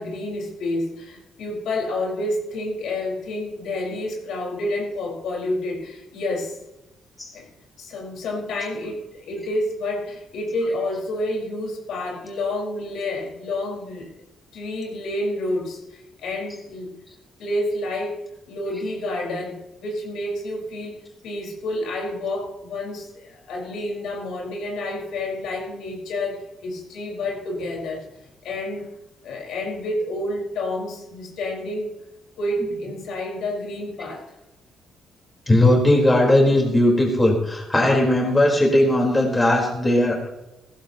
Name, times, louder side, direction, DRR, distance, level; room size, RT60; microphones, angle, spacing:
voice 1, 0.0-6.6 7.3-7.5 7.8-14.1 14.5-16.9 17.4-18.1 18.5-20.9 21.2-28.1 28.4-28.9 29.2-31.9 32.4-34.2, left 1 dB, 80° left, -2 dB, 4.9 m, -29 dB
voice 2, 35.5-40.3, left 1 dB, 20° left, 0 dB, 4.3 m, -18 dB
17.0 x 15.0 x 3.0 m, 0.95 s
cardioid pair, 90°, 0 cm